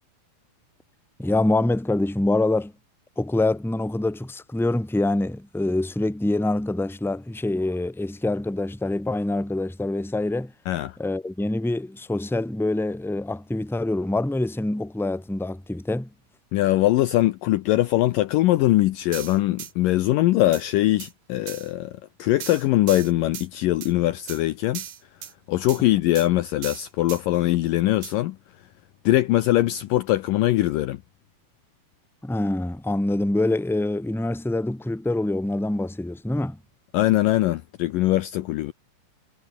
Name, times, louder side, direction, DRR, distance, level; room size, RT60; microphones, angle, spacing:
voice 1, 1.2-2.7 3.2-10.5 11.0-16.1 32.2-36.6, left 2 dB, ahead, 2.3 m, -25 dB
voice 2, 10.7-11.0 16.5-24.8 25.5-28.4 29.1-31.0 36.9-38.7, left 16 dB, 75° left, 2.2 m, -22 dB
sound 1, 19.1-19.7 20.5-20.6 21.0-21.1 21.5-21.7 22.4-23.5 23.8-23.9 24.3-24.4 24.7-25.3 25.7-25.8 26.2-26.3 26.6-27.2 28.0-28.1, right 10 dB, 60° right, 3.7 m, -37 dB
omnidirectional pair, 4.5 m